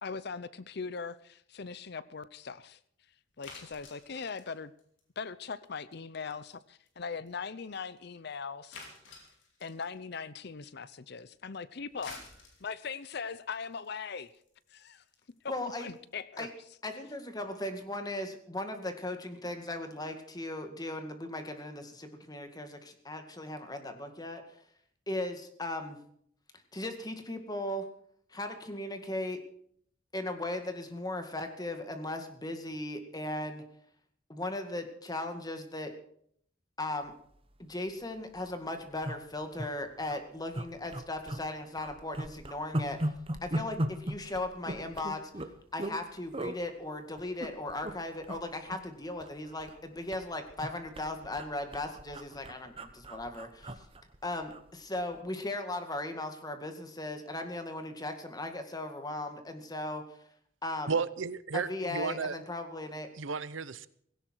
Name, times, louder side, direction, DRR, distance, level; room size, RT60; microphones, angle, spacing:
voice 1, 0.0-2.8 3.4-4.7 5.2-8.8 9.6-12.2 12.6-14.3 14.7-15.0 15.4-15.5 15.8-16.5, left 5 dB, 55° left, 0.7 m, -40 dB
sound 1, 3.4-5.7 5.9-6.2 6.5-6.6 6.9-7.0 7.3-7.4 7.7-7.8 8.7-10.0 11.8-16.1, left 3 dB, 75° left, 4.9 m, -50 dB
voice 2, 15.5-15.9 16.4-16.5 16.8-24.4 25.1-26.0 26.7-27.8 28.3-29.4 30.1-33.6 34.3-35.9 36.8-37.1 37.6-45.5 45.7-53.9 54.2-60.0 60.6-60.9 61.5-63.1, left 1 dB, 20° left, 2.0 m, -37 dB
sound 2, 37.6-37.7 38.0-38.1 38.3-38.5 39.0-39.7 40.0-40.2 40.5-41.5 41.8-46.0 46.3-46.6 47.2-47.9 48.2-48.4 48.7-49.8 50.1-54.7 55.0-55.2, right 1 dB, 30° right, 1.2 m, -37 dB
voice 3, 60.9-62.4 63.2-63.9, right 5 dB, 85° right, 0.8 m, -33 dB
17.0 x 17.0 x 4.6 m
head